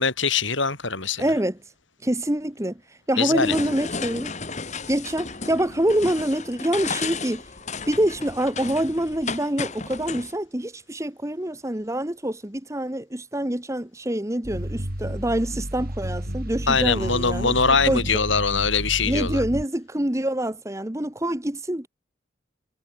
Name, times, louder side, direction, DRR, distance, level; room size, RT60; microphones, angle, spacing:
voice 1, 0.0-1.2 3.2-3.5 16.7-19.4, left 5 dB, 70° left, 5.2 m, -22 dB
voice 2, 1.2-1.6 2.0-2.8 3.1-4.3 4.9-7.4 7.9-18.1 19.0-21.9, right 1 dB, 15° right, 1.2 m, -26 dB
sound 1, 3.3-10.3, left 4 dB, 35° left, 2.0 m, -33 dB
sound 2, 14.4-19.7, equal, 45° right, 3.2 m, -31 dB
head